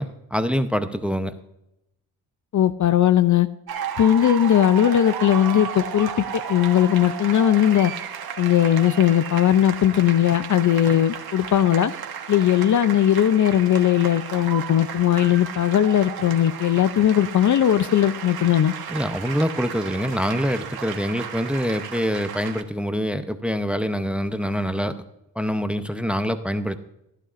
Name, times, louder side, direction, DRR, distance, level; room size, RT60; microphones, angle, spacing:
voice 1, 0.0-1.3 18.9-24.9 25.4-26.8, equal, 5° right, 10 dB, 0.7 m, -25 dB
voice 2, 2.5-3.5 4.0-6.1 6.5-7.9 8.4-11.9 12.3-18.7, left 11 dB, 45° left, 14 dB, 0.5 m, -18 dB
sound 1, 3.7-22.6, right 8 dB, 60° right, 1.5 m, -34 dB
15.5 x 11.5 x 2.5 m, 0.86 s
cardioid pair, 95°, 42 cm